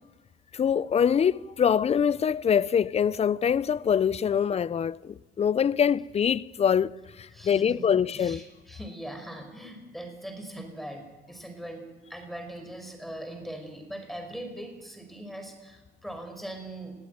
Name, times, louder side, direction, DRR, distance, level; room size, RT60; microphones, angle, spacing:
voice 1, 0.5-6.9 7.4-8.4, left 7 dB, 35° left, 0.6 m, -24 dB
voice 2, 7.3-11.8 12.1-16.9, right 1 dB, ahead, 5.3 m, -41 dB
21.5 x 15.0 x 9.3 m
cardioid pair, 95°, 19 cm